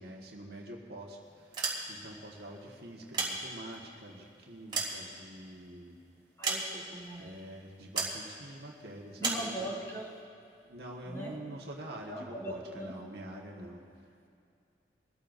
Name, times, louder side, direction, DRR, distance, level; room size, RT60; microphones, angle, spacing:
voice 1, 0.0-1.6 1.9-6.0 7.2-9.8 10.7-13.8, right 1 dB, 65° right, -1 dB, 1.7 m, -46 dB
sound 1, 1.4-2.2 2.9-3.9 4.4-5.6 6.4-7.1 8.0-8.2 9.2-9.5, right 4 dB, 25° right, 2.6 m, -34 dB
voice 2, 6.4-7.4 9.2-10.1 11.0-11.4 12.1-13.0, right 1 dB, 15° left, -5 dB, 2.9 m, -40 dB
23.0 x 14.0 x 2.7 m, 2.5 s
head